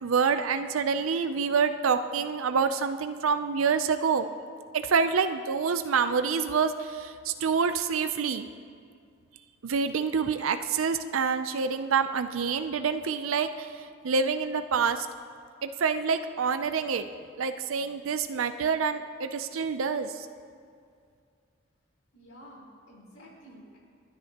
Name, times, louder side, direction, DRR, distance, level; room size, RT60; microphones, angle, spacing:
voice 1, 0.0-4.3 4.7-8.5 9.6-15.1 15.6-17.1 17.4-20.3, right 5 dB, 85° right, 9 dB, 0.5 m, -27 dB
voice 2, 22.1-23.8, equal, 85° left, -4 dB, 4.2 m, -50 dB
29.5 x 9.9 x 2.9 m, 2.3 s
head